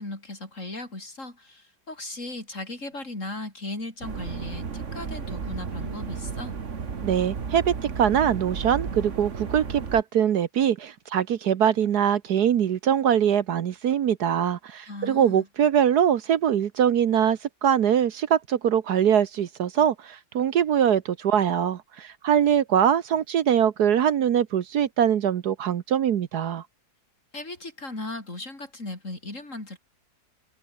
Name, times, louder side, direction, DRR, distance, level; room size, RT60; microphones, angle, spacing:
voice 1, 0.0-6.5 14.9-15.5 27.3-29.8, left 2 dB, 45° left, 5.7 m, -37 dB
sound 1, 4.0-10.0, right 5 dB, 45° right, 1.9 m, -33 dB
voice 2, 7.0-26.6, right 9 dB, 65° right, 1.5 m, -23 dB
omnidirectional pair, 1.9 m